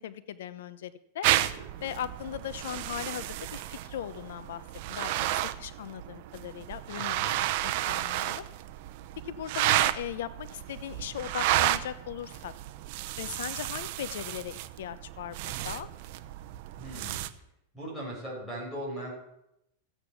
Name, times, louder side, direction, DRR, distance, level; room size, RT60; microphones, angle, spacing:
voice 1, 0.0-1.3 1.8-4.6 4.9-7.2 7.6-8.5 9.2-12.5 13.2-15.9, left 10 dB, 75° left, 14 dB, 0.9 m, -39 dB
sound 1, 1.2-17.3, right 14 dB, 55° right, 0.8 m, -32 dB
voice 2, 1.4-1.9 7.0-7.4 16.8-17.2 17.7-19.1, right 1 dB, 5° left, -4 dB, 6.8 m, -39 dB
14.0 x 8.9 x 7.0 m, 0.82 s
supercardioid pair, 140°, 0 cm